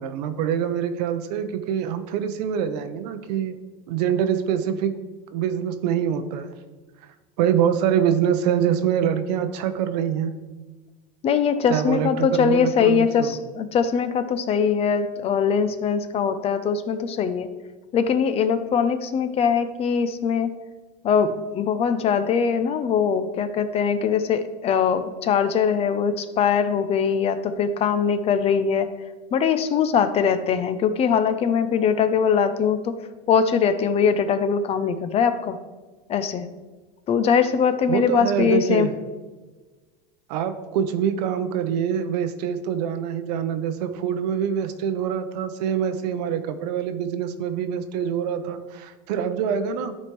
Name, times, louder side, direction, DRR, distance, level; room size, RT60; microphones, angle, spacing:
voice 1, 0.0-3.6 3.9-5.0 5.3-6.5 7.4-10.4 11.7-13.3 37.9-38.9 40.3-50.0, right 8 dB, 80° right, 10 dB, 0.8 m, -25 dB
voice 2, 11.2-17.5 17.9-20.5 21.0-28.9 29.3-33.0 33.3-35.6 36.1-36.5 37.1-38.9, left 6 dB, 30° left, 11 dB, 0.5 m, -22 dB
13.0 x 4.3 x 3.2 m, 1.3 s
supercardioid pair, 140°, 21 cm